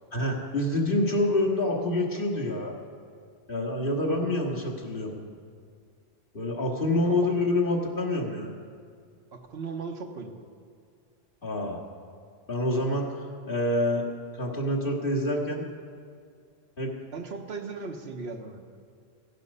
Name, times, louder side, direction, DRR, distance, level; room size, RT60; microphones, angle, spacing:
voice 1, 0.1-2.7 3.5-5.1 6.3-8.5 11.4-11.8 12.5-13.1 13.5-14.1 14.3-15.6 16.8-16.9, left 1 dB, 55° left, -1 dB, 1.9 m, -27 dB
voice 2, 7.0-7.5 9.3-10.4 17.1-18.8, right 4 dB, 75° right, 4 dB, 1.2 m, -38 dB
15.5 x 10.5 x 5.4 m, 2.2 s
omnidirectional pair, 1.1 m